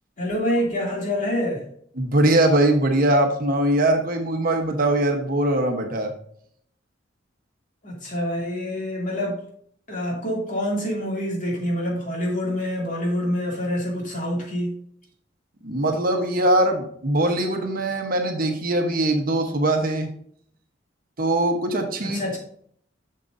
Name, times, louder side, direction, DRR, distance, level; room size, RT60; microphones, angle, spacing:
voice 1, 0.2-1.6 7.8-9.4 9.9-14.7 22.0-22.4, equal, 45° left, 2.6 m, -26 dB
voice 2, 2.0-6.1 15.6-20.1 21.2-22.2, right 1 dB, 50° right, 1.1 m, -21 dB
7.6 x 6.6 x 2.6 m
head